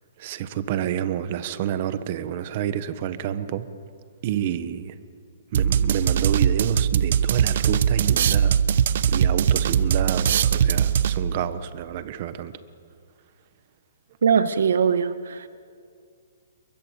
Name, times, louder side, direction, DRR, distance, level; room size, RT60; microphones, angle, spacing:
voice 1, 0.2-3.7 4.2-5.0 5.5-8.6 9.1-12.5, right 10 dB, 35° right, 12 dB, 1.3 m, -28 dB
sound 1, 5.5-11.4, right 8 dB, 50° right, 0.9 m, -21 dB
voice 2, 14.2-15.5, right 6 dB, 70° right, 11 dB, 1.8 m, -21 dB
28.5 x 23.0 x 8.4 m, 2.3 s
hypercardioid pair, 170°, 0 cm